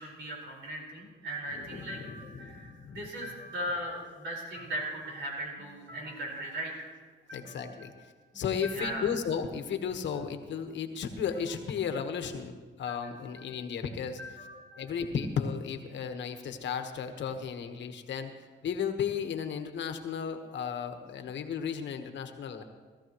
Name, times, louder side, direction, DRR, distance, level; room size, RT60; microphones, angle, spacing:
voice 1, 0.0-6.9 7.3-8.0 8.3-9.1 12.9-13.5 13.9-15.0, right 1 dB, 70° right, -1 dB, 4.7 m, -39 dB
voice 2, 1.6-3.1 7.3-7.9 8.3-14.2 14.8-22.6, left 7 dB, 65° left, 6 dB, 1.3 m, -34 dB
18.0 x 13.5 x 3.1 m, 1.4 s
cardioid pair, 90°, 20 cm